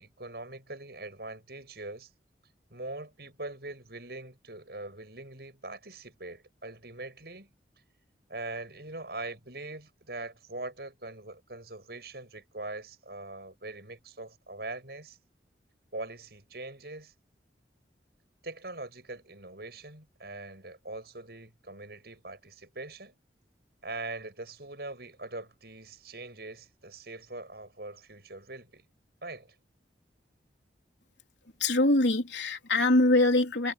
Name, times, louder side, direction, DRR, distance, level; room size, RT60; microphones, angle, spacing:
voice 1, 0.0-2.1 2.7-7.5 8.3-15.2 15.9-17.1 18.4-23.1 23.8-28.9 29.2-29.5, right 2 dB, 60° right, 7.6 m, -42 dB
voice 2, 31.6-33.7, left 2 dB, 85° left, 3.4 m, -23 dB
head